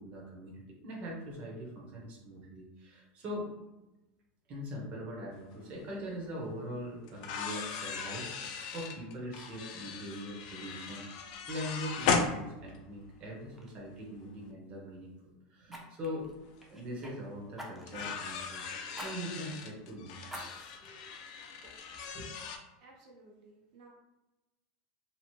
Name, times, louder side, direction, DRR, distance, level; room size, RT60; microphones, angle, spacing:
voice 1, 0.0-3.5 4.5-16.3 16.7-20.4 21.6-21.7 22.1-22.3, equal, 35° right, -3 dB, 0.8 m, -42 dB
sound 1, 5.8-5.9 7.1-13.1 14.3-14.4 16.2-16.3 16.6-16.7 17.9-22.6, left 5 dB, 65° left, 0.4 m, -37 dB
Fire, 13.0-13.2 13.6-13.8 15.7-17.1 17.6-18.1 18.9-19.1 19.5-19.6 20.3-20.9 21.4-21.5, equal, 5° right, 0.4 m, -46 dB
voice 2, 22.8-23.9, right 2 dB, 75° right, -1 dB, 0.7 m, -57 dB
2.8 x 2.0 x 3.0 m, 1.0 s
supercardioid pair, 160°, 4 cm